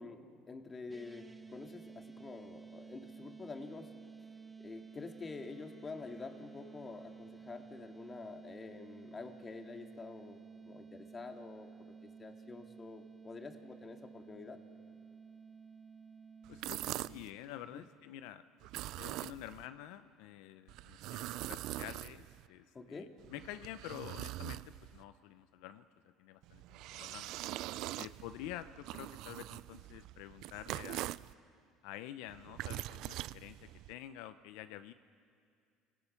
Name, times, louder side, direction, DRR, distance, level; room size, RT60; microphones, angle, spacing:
voice 1, 0.0-3.9 4.6-11.7 12.2-14.6 14.9-15.0 17.7-17.8 22.7-23.2, left 4 dB, 30° left, 4 dB, 2.4 m, -48 dB
sound 1, 0.9-17.2, right 5 dB, 15° right, 1.6 m, -53 dB
Wind instrument woodwind instrument, 4.1-8.4, right 1 dB, 10° left, 2.8 m, -68 dB
sound 2, 16.4-17.3 18.6-19.7 20.7-22.5 23.2-25.0 26.4-31.3 32.3-33.9, right 16 dB, 70° right, 0.4 m, -43 dB
voice 2, 16.5-18.4 19.0-25.9 26.2-27.3 28.0-31.1 31.8-34.9, left 12 dB, 80° left, 11 dB, 0.6 m, -48 dB
28.5 x 19.0 x 5.8 m, 2.3 s
supercardioid pair, 95°, 0 cm